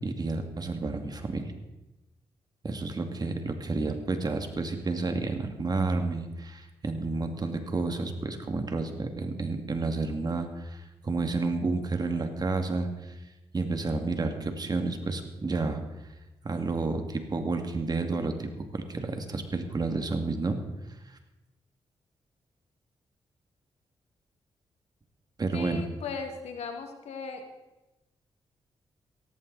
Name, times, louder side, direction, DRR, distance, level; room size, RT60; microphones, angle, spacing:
voice 1, 0.0-1.5 2.6-13.2 13.5-15.8 16.4-20.6 25.4-25.8, right 3 dB, 40° right, 6 dB, 2.2 m, -30 dB
voice 2, 25.5-27.4, left 4 dB, 85° left, 5 dB, 2.1 m, -37 dB
17.0 x 14.5 x 4.1 m, 1.0 s
cardioid pair, 65°, 10 cm